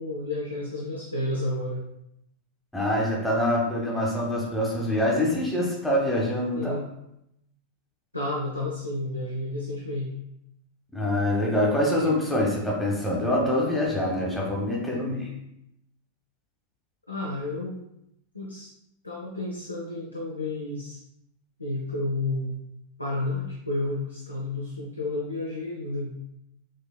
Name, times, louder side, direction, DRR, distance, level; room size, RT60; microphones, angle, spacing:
voice 1, 0.0-1.8 6.5-6.9 8.1-10.1 15.0-15.3 17.1-17.7 18.3-18.7 19.0-21.0 21.6-22.5 23.0-26.1, left 2 dB, 85° left, -3 dB, 0.6 m, -31 dB
voice 2, 2.7-6.8 10.9-15.3, left 1 dB, 5° left, -3 dB, 0.9 m, -25 dB
6.1 x 2.8 x 2.2 m, 0.81 s
figure-of-eight pair, 90°, 0 cm